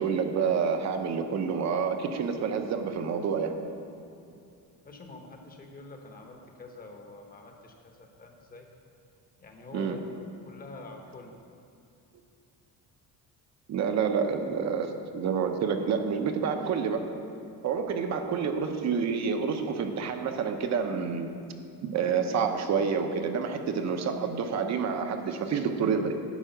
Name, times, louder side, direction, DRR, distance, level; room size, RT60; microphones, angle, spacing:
voice 1, 0.0-3.5 9.7-10.0 13.7-17.1 17.6-21.3 21.8-26.1, right 6 dB, 45° right, 6 dB, 0.8 m, -28 dB
voice 2, 4.8-8.7 9.4-10.0 10.5-11.3, left 3 dB, 25° left, 3 dB, 0.9 m, -46 dB
11.5 x 4.8 x 7.8 m, 2.5 s
cardioid pair, 175°, 37 cm